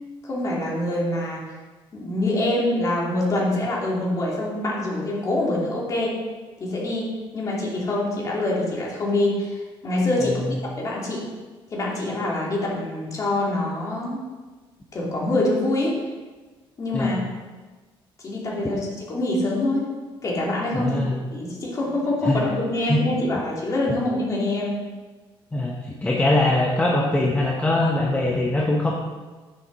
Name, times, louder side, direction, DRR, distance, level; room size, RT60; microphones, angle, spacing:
voice 1, 0.2-1.4 1.9-6.1 6.6-7.0 7.3-10.4 10.8-11.2 11.7-14.2 14.9-15.9 16.8-17.2 18.2-19.9 20.2-24.8, left 1 dB, 35° left, -4 dB, 2.7 m, -25 dB
voice 2, 10.2-10.5 16.9-17.1 20.7-21.1 22.2-22.4 22.9-23.0 25.5-25.7 26.0-28.9, left 2 dB, 15° left, -2 dB, 0.9 m, -22 dB
9.9 x 7.2 x 4.0 m, 1.3 s
cardioid pair, 140°, 10 cm